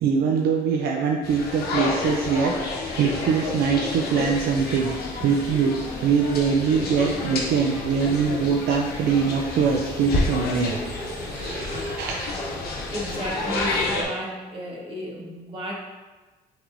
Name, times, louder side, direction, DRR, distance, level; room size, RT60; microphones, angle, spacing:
voice 1, 0.0-10.8 11.2-12.3, right 6 dB, 70° right, 1 dB, 0.5 m, -23 dB
sound 1, 1.2-14.0, left 3 dB, 65° left, 1.0 m, -30 dB
sound 2, 4.3-13.8, equal, 10° left, 0.9 m, -41 dB
voice 2, 12.9-15.7, equal, 30° right, -2 dB, 1.3 m, -33 dB
5.8 x 3.6 x 2.6 m, 1.3 s
cardioid pair, 110°, 17 cm